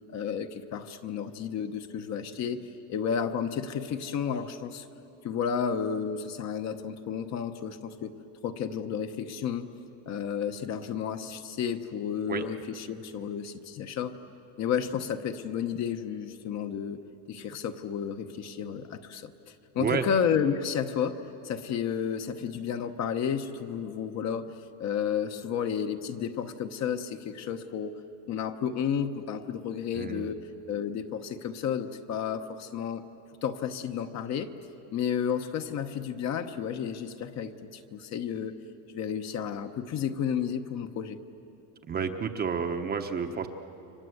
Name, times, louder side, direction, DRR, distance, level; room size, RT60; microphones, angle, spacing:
voice 1, 0.0-2.6 2.9-4.9 5.2-8.1 8.4-9.7 10.1-14.2 14.6-17.0 17.3-21.2 21.4-28.0 28.3-33.0 33.4-34.5 34.9-38.5 38.9-41.2, left 7 dB, 35° left, 7 dB, 1.1 m, -32 dB
voice 2, 29.9-30.3 41.9-43.5, right 6 dB, 20° right, 5 dB, 1.0 m, -30 dB
30.0 x 24.0 x 8.0 m, 2.9 s
supercardioid pair, 145°, 44 cm